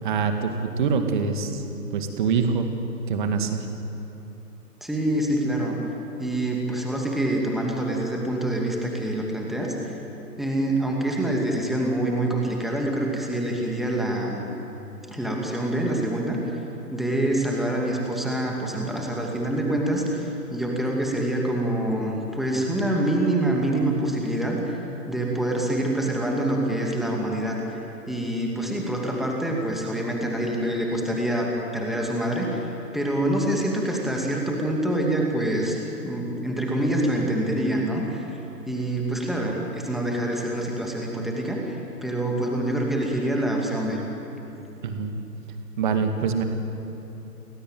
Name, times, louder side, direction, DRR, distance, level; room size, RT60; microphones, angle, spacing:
voice 1, 0.0-1.6 1.9-2.7 3.1-3.6 44.8-45.1 45.8-46.4, right 5 dB, 30° right, 6 dB, 2.3 m, -24 dB
voice 2, 4.8-5.8 6.2-9.9 10.4-14.5 15.1-16.4 16.9-24.8 25.1-35.8 36.0-38.2 38.7-44.0, right 1 dB, ahead, -1 dB, 2.4 m, -26 dB
30.0 x 21.0 x 9.1 m, 3.0 s
figure-of-eight pair, 140°, 49 cm